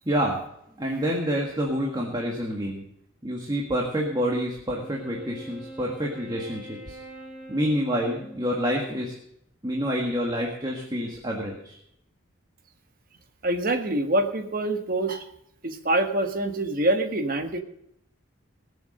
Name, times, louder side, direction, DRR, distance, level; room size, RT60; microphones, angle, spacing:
voice 1, 0.1-0.4 0.8-2.8 3.2-7.0 7.5-9.2 9.6-11.8, equal, 20° right, -1 dB, 1.8 m, -28 dB
Wind instrument woodwind instrument, 4.7-9.2, right 1 dB, 5° right, 2.6 m, -44 dB
voice 2, 13.4-15.2 15.6-17.6, right 1 dB, 45° right, 6 dB, 1.4 m, -25 dB
20.0 x 7.3 x 6.5 m, 0.76 s
head